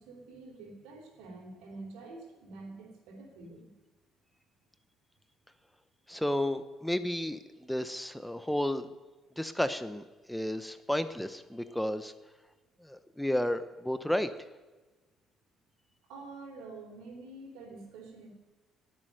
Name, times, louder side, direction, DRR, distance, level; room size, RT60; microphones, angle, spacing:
voice 1, 0.0-3.7 16.1-18.3, right 3 dB, 85° right, 3 dB, 3.9 m, -47 dB
voice 2, 6.1-8.9 9.4-12.1 12.8-14.3, left 1 dB, 5° left, 10 dB, 0.9 m, -32 dB
19.0 x 7.8 x 6.6 m, 1.2 s
supercardioid pair, 80°, 0 cm